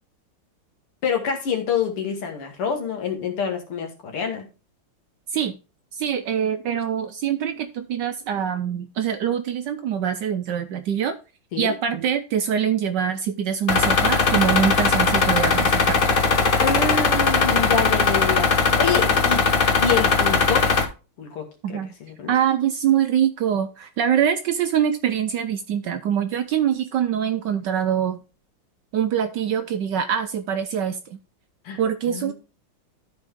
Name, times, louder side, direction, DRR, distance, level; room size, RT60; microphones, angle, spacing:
voice 1, 1.0-4.5 11.5-11.8 16.6-19.5 19.8-20.7 21.2-22.3 31.6-31.8 32.1-32.3, left 6 dB, 85° left, 4 dB, 2.5 m, -26 dB
voice 2, 5.9-11.2 11.6-16.2 21.6-21.9 22.3-28.2 28.9-31.2 31.8-32.3, right 9 dB, 75° right, 9 dB, 1.0 m, -24 dB
sound 1, 13.7-20.8, left 4 dB, 55° left, 0.5 m, -19 dB
12.5 x 4.4 x 3.6 m, 0.32 s
omnidirectional pair, 2.4 m